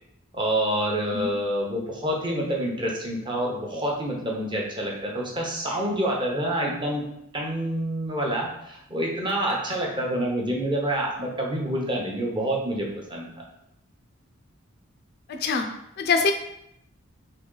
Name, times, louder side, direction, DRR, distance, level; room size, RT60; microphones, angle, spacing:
voice 1, 0.3-7.0 7.3-13.3, right 1 dB, 20° right, -2 dB, 0.8 m, -27 dB
voice 2, 15.3-15.7 16.0-16.3, left 4 dB, 50° left, 5 dB, 0.4 m, -23 dB
3.8 x 3.1 x 3.8 m, 0.78 s
head